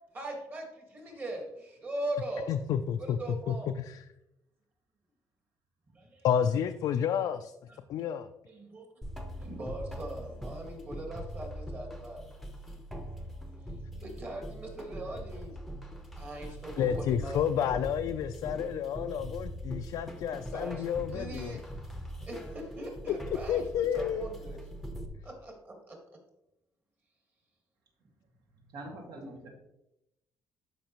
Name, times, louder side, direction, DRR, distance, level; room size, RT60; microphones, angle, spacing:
voice 1, 0.1-2.5 3.0-3.7 5.9-6.3 7.7-7.8 8.5-8.9 9.4-12.2 13.6-15.6 16.1-17.4 20.5-21.6 22.2-24.6 25.2-26.0, right 1 dB, 30° right, 2 dB, 1.7 m, -40 dB
voice 2, 2.5-3.2 3.5-4.0 6.2-7.5 7.9-8.3 16.8-21.5 23.5-24.3, left 8 dB, 65° left, 7 dB, 0.4 m, -30 dB
sound 1, 9.0-25.1, equal, ahead, 0.8 m, -42 dB
voice 3, 28.7-29.5, right 1 dB, 75° right, 0 dB, 2.2 m, -43 dB
12.0 x 5.1 x 3.0 m, 0.87 s
cardioid pair, 160°, 7 cm